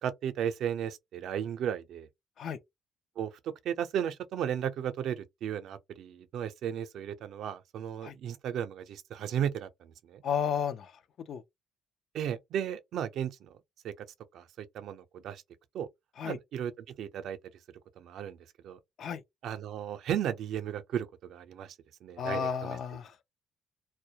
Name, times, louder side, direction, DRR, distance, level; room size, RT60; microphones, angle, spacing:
voice 1, 0.0-2.1 3.2-10.2 12.1-13.5 13.8-13.9 14.3-15.4 15.7-15.9 16.2-16.7 17.0-17.4 18.0-18.4 18.6-18.8 19.4-21.8 22.0-22.8, right 9 dB, 75° right, 0.4 m, -35 dB
voice 2, 10.2-10.9 11.3-11.4 16.2-16.4 19.0-19.2 22.2-23.1, left 7 dB, 65° left, 0.4 m, -32 dB
2.2 x 2.0 x 2.8 m
cardioid pair, 90°, 0 cm